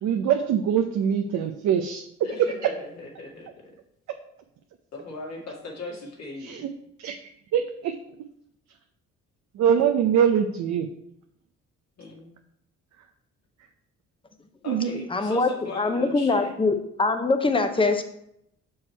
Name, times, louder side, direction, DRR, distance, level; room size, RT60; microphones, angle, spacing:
voice 1, 0.0-2.0 6.4-6.7 7.0-7.2 7.5-7.9 9.5-10.9 14.7-15.1, right 8 dB, 70° right, 5 dB, 0.6 m, -23 dB
voice 2, 2.2-3.8 4.9-6.7 12.0-12.3 14.6-16.5, left 3 dB, 60° left, -1 dB, 2.1 m, -39 dB
voice 3, 15.1-15.5 15.8-18.0, left 3 dB, 15° left, 7 dB, 0.8 m, -23 dB
6.1 x 4.7 x 4.4 m, 0.76 s
cardioid pair, 90°, 30 cm